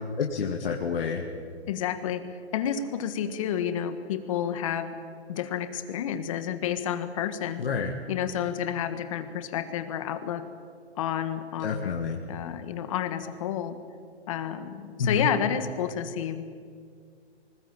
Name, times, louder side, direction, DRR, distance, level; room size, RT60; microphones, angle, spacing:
voice 1, 0.2-1.2 7.6-8.0 11.6-12.2 15.0-15.3, left 5 dB, 55° left, 1 dB, 2.3 m, -28 dB
voice 2, 1.7-2.2 2.5-4.9 5.3-7.6 8.1-10.4 11.0-11.9 12.3-13.8 14.3-16.5, left 9 dB, 30° left, 10 dB, 1.5 m, -30 dB
24.0 x 20.5 x 8.9 m, 2.2 s
hypercardioid pair, 160°, 34 cm